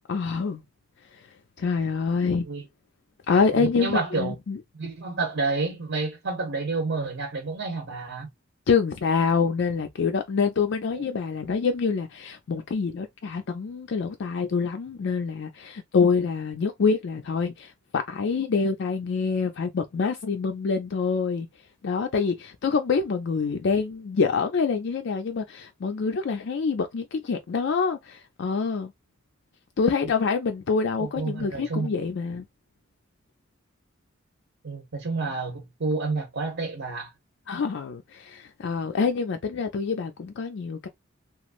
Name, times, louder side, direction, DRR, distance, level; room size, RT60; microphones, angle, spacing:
voice 1, 0.1-0.6 1.6-2.5 3.3-4.6 8.7-21.5 21.8-28.9 29.8-32.4 37.5-40.9, left 5 dB, 60° left, 0.4 m, -26 dB
voice 2, 2.3-2.6 3.5-4.3 4.7-8.3 11.0-11.1 31.0-31.9 34.6-37.1, right 3 dB, 65° right, 0.9 m, -29 dB
3.0 x 2.4 x 2.5 m
head